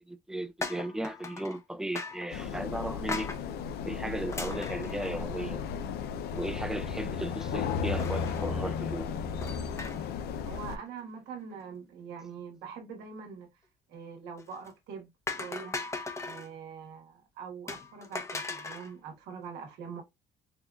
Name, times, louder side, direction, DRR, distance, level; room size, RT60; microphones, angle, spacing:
voice 1, 0.1-3.3 3.8-5.6 6.4-9.1, right 1 dB, 5° right, 0.4 m, -36 dB
sound 1, 0.6-1.6 2.0-2.3 3.1-3.4 4.3-5.7 6.1-6.2 6.4-6.5 8.0-8.5 9.4-10.2 10.5-10.8 14.4-14.7 15.3-16.5 17.7-18.9, left 3 dB, 15° left, 0.8 m, -38 dB
sound 2, 2.3-10.8, left 6 dB, 70° left, 0.5 m, -34 dB
voice 2, 10.4-13.5 13.9-15.8 16.2-20.0, right 6 dB, 85° right, 1.5 m, -43 dB
4.8 x 2.4 x 2.3 m
cardioid pair, 110°, 17 cm